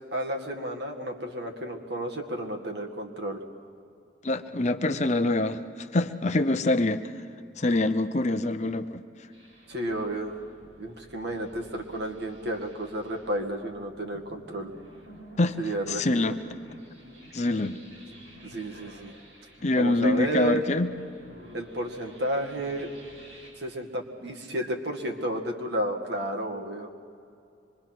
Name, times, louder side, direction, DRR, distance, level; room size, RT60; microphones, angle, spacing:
voice 1, 0.1-3.4 9.7-10.4 10.8-14.7 15.6-16.4 18.4-19.1 19.8-20.6 21.5-22.9 23.6-26.9, right 1 dB, 60° right, 2 dB, 2.0 m, -32 dB
voice 2, 4.2-7.0 7.6-8.9 15.4-15.6 15.9-16.4 17.3-17.8 19.6-20.9, left 2 dB, 35° left, 9 dB, 0.7 m, -25 dB
sound 1, 9.3-23.5, equal, 75° right, 7.6 m, -51 dB
25.5 x 22.5 x 6.1 m, 2.5 s
head